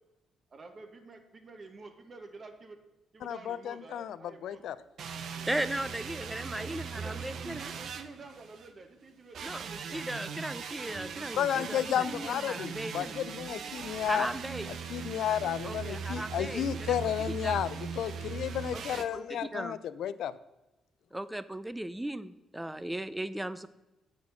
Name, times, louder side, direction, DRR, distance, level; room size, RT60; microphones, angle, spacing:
voice 1, 0.5-2.8 3.1-4.6 6.6-10.0 12.2-12.5, right 3 dB, 40° right, 6 dB, 1.4 m, -50 dB
voice 2, 3.2-4.8 11.3-14.3 14.9-20.3, left 10 dB, 75° left, 15 dB, 0.5 m, -32 dB
sound 1, 5.0-8.7 9.3-19.0, right 6 dB, 65° right, 0.7 m, -40 dB
voice 3, 5.5-7.7 9.4-13.1 14.0-14.8 15.6-17.6 18.7-19.8 21.1-23.7, right 1 dB, 10° right, 14 dB, 0.5 m, -37 dB
8.6 x 5.9 x 5.8 m, 1.0 s
cardioid pair, 90°, 0 cm